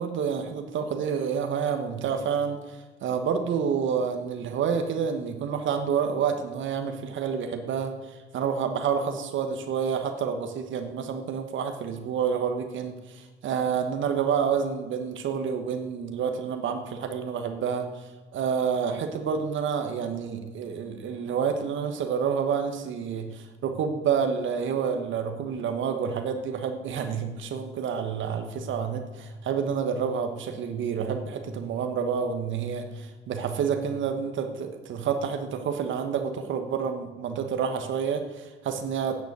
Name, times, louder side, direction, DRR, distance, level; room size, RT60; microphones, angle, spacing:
voice 1, 0.0-17.9 18.3-39.2, right 7 dB, 75° right, 6 dB, 1.3 m, -29 dB
9.3 x 8.2 x 9.3 m, 1.3 s
cardioid pair, 90°, 20 cm